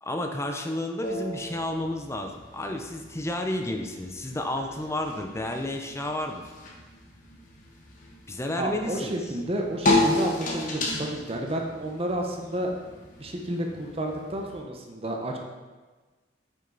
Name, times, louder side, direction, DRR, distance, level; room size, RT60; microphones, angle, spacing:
voice 1, 0.0-6.5 8.3-9.2, left 1 dB, 15° left, 4 dB, 0.6 m, -31 dB
sound 1, 1.0-14.6, left 2 dB, 45° left, 1.4 m, -33 dB
voice 2, 8.6-12.7 13.2-15.4, right 1 dB, 35° right, 2 dB, 0.9 m, -31 dB
8.9 x 6.2 x 3.9 m, 1.3 s
head